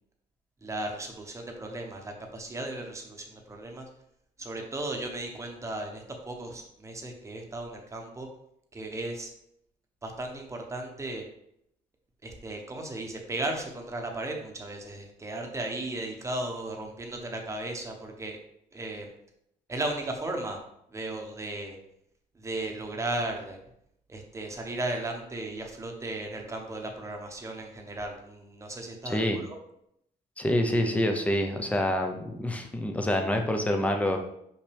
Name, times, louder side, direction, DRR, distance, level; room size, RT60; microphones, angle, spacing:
voice 1, 0.6-3.9 4.4-8.3 8.7-9.3 10.0-11.2 12.2-18.4 18.7-19.1 19.7-20.6 20.9-21.8 22.3-23.6 24.1-29.6, right 2 dB, 20° right, 2 dB, 1.0 m, -35 dB
voice 2, 29.0-29.4 30.4-34.2, left 1 dB, 10° left, 4 dB, 0.7 m, -27 dB
5.9 x 5.7 x 3.4 m, 0.75 s
cardioid pair, 150°, 16 cm